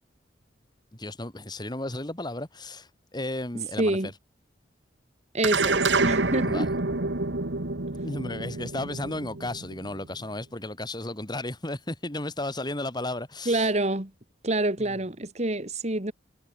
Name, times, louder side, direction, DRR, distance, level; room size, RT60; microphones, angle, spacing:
voice 1, 0.9-4.0 6.4-6.7 8.0-13.7 14.8-15.0, left 1 dB, 25° left, 3.0 m, -34 dB
voice 2, 3.8-4.1 5.3-6.7 13.5-14.1 14.4-16.1, right 2 dB, 40° right, 2.6 m, -27 dB
sound 1, 5.4-10.1, right 3 dB, 85° right, 2.1 m, -27 dB
head